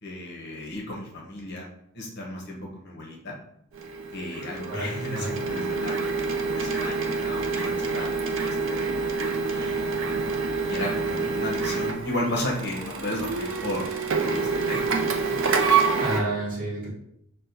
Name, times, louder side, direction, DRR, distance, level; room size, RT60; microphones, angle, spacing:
voice 1, 0.0-1.7 1.9-3.4 4.1-8.8 9.5-9.9 10.6-13.9 14.2-15.4, left 1 dB, 50° left, -2 dB, 0.8 m, -34 dB
Printer, 3.7-16.2, right 4 dB, 60° right, 0.4 m, -27 dB
voice 2, 4.7-5.3 16.0-16.9, right 1 dB, 40° right, -4 dB, 1.1 m, -30 dB
6.0 x 2.2 x 2.6 m, 0.75 s
head